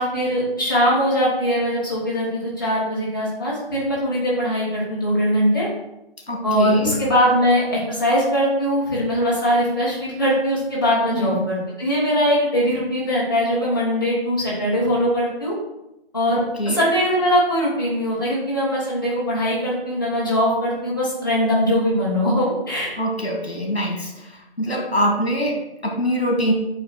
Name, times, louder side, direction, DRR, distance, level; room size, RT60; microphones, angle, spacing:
voice 1, 0.0-5.7 6.4-15.6 16.1-22.9, equal, 20° left, -7 dB, 1.2 m, -21 dB
voice 2, 6.3-6.9 11.1-11.5 16.3-16.8 23.0-26.5, equal, 80° left, 0 dB, 2.1 m, -24 dB
8.3 x 2.9 x 4.2 m, 0.88 s
figure-of-eight pair, 170°, 31 cm